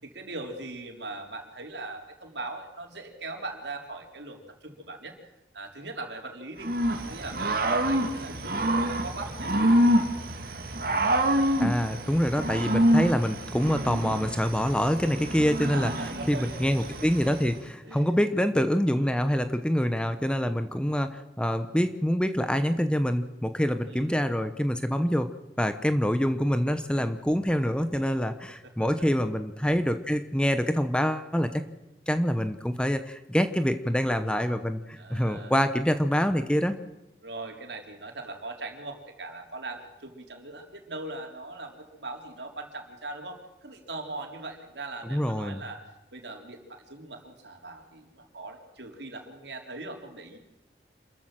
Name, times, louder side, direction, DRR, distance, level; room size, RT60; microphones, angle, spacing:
voice 1, 0.0-5.1 5.5-9.8 15.6-16.6 17.8-18.1 18.9-19.4 23.9-24.1 28.6-28.9 35.0-35.7 37.2-50.4, right 2 dB, 75° right, 3 dB, 3.8 m, -40 dB
Growling / Cricket, 6.6-17.5, right 1 dB, 55° right, 2.2 m, -27 dB
voice 2, 11.6-15.9 16.3-25.3 25.6-31.6 32.1-36.8 45.0-45.6, equal, 5° left, 9 dB, 0.9 m, -26 dB
27.0 x 14.0 x 7.6 m, 0.99 s
head